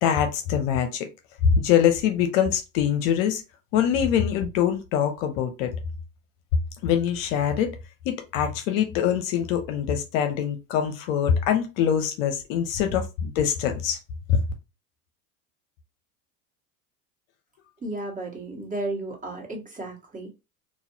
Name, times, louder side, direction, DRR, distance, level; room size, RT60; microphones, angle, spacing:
voice 1, 0.0-1.1 1.4-3.4 3.7-5.7 6.8-7.7 8.1-14.0 14.3-14.4, left 8 dB, 55° left, 0.7 m, -23 dB
voice 2, 17.8-20.3, right 2 dB, 15° right, 1.5 m, -33 dB
4.0 x 2.4 x 2.7 m
hypercardioid pair, 85°, 48 cm